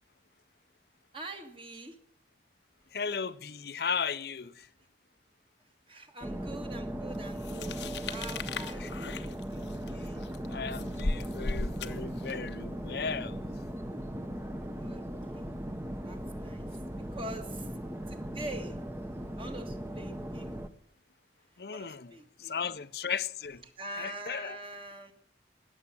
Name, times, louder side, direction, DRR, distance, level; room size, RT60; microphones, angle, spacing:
voice 1, 1.1-2.0 5.9-9.6 9.9-10.3 14.8-15.0 15.3-15.5 16.0-16.7 17.1-17.7 18.1-18.8 19.4-20.6 21.7-22.7 23.6-25.1, right 2 dB, 30° right, 1.7 m, -44 dB
voice 2, 2.9-4.7 8.8-8.9 10.5-13.4 21.6-22.1 22.4-23.6 24.0-24.6, left 6 dB, 60° left, 0.6 m, -35 dB
sound 1, 6.2-20.7, right 1 dB, 15° right, 0.8 m, -38 dB
sound 2, 7.4-12.5, left 2 dB, 85° left, 0.9 m, -37 dB
19.5 x 7.3 x 7.1 m
head